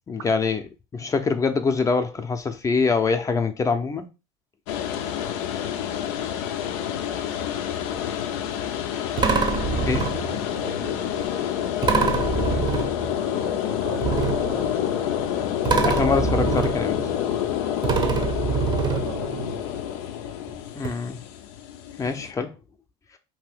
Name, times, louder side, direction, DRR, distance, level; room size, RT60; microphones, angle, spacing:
voice 1, 0.1-4.1 9.9-10.1 15.8-17.1 19.6-19.7 20.8-21.2 22.0-22.5, left 4 dB, 25° left, 0.5 m, -24 dB
sound 1, 4.7-22.3, left 10 dB, 80° left, 0.4 m, -28 dB
sound 2, 7.7-7.9 9.2-10.5 11.8-13.4 14.0-15.3 15.7-17.5 17.8-19.6 20.5-20.6 20.8-20.9, right 5 dB, 35° right, 0.6 m, -25 dB
voice 2, 10.0-11.4 12.9-14.9 17.9-18.3 18.8-19.6, right 8 dB, 80° right, 0.5 m, -38 dB
2.7 x 2.6 x 3.5 m
supercardioid pair, 95°, 13 cm